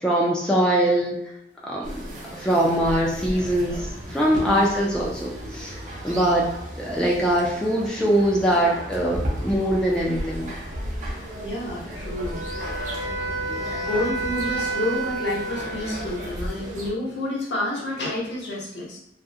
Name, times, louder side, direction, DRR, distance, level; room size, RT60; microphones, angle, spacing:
voice 1, 0.0-1.2 1.6-2.0 2.3-3.8 4.1-5.8 6.0-6.5 6.8-10.5, right 1 dB, 5° left, -4 dB, 0.3 m, -22 dB
sound 1, 1.8-16.9, equal, 45° right, 0.5 m, -34 dB
voice 2, 11.4-12.5 13.9-19.0, left 1 dB, 80° left, -3 dB, 0.8 m, -29 dB
Wind instrument woodwind instrument, 12.2-16.3, right 2 dB, 75° right, 0.8 m, -30 dB
2.3 x 2.0 x 2.6 m, 0.83 s
head